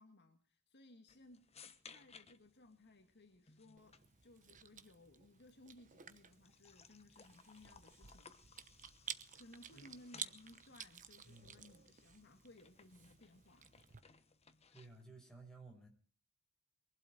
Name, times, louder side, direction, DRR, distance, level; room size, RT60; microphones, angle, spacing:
voice 1, 0.0-8.6 9.3-13.7, left 1 dB, 50° left, 5 dB, 1.9 m, -62 dB
sound 1, 1.1-15.1, left 5 dB, 30° left, 1.2 m, -64 dB
Chewing mastication, 3.8-14.0, right 8 dB, 35° right, 1.0 m, -53 dB
voice 2, 11.2-11.6 14.7-15.9, right 3 dB, 5° left, 1 dB, 6.0 m, -56 dB
23.0 x 12.0 x 5.0 m, 0.41 s
head